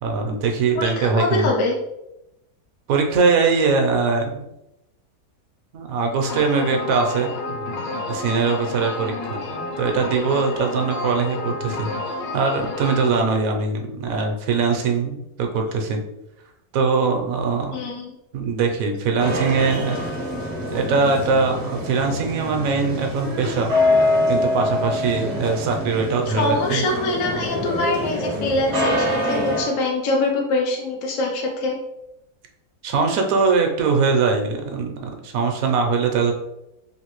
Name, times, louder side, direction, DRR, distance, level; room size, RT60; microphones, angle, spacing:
voice 1, 0.0-1.5 2.9-4.4 5.7-7.3 8.1-9.4 9.8-11.9 12.3-16.0 16.7-17.8 18.3-20.0 20.7-23.7 24.3-26.8 32.8-36.3, right 4 dB, 70° right, 3 dB, 0.9 m, -21 dB
voice 2, 0.8-1.7 17.7-18.1 26.3-31.8, left 2 dB, 70° left, -1 dB, 0.9 m, -24 dB
sound 1, 6.2-13.1, left 2 dB, 90° left, 1.2 m, -30 dB
sound 2, 19.2-29.6, left 1 dB, 40° right, 0.6 m, -25 dB
3.1 x 2.6 x 2.9 m, 0.87 s
omnidirectional pair, 1.7 m